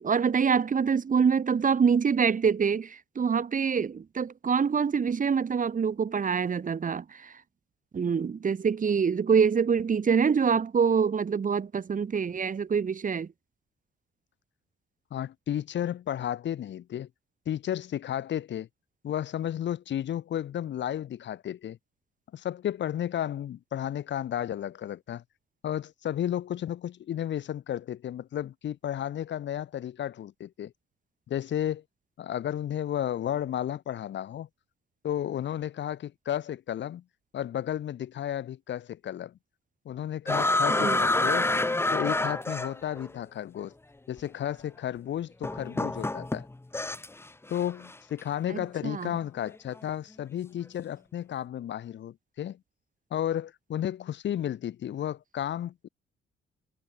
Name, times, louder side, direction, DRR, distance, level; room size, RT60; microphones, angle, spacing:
voice 1, 0.0-7.3 7.9-13.3 40.7-41.0 48.5-49.1, right 6 dB, 40° right, 3.4 m, -25 dB
voice 2, 15.1-17.1 17.5-18.7 19.0-21.8 22.3-25.2 25.6-30.7 31.3-31.8 32.2-34.5 35.0-37.0 37.3-39.4 39.9-41.6 41.9-43.7 44.1-46.5 47.5-52.6 53.1-55.9, left 11 dB, 65° left, 1.9 m, -33 dB
sound 1, 40.3-43.1 44.2-44.3 45.4-47.2 47.5-47.9, left 2 dB, 10° left, 1.4 m, -27 dB
cardioid pair, 90°, 20 cm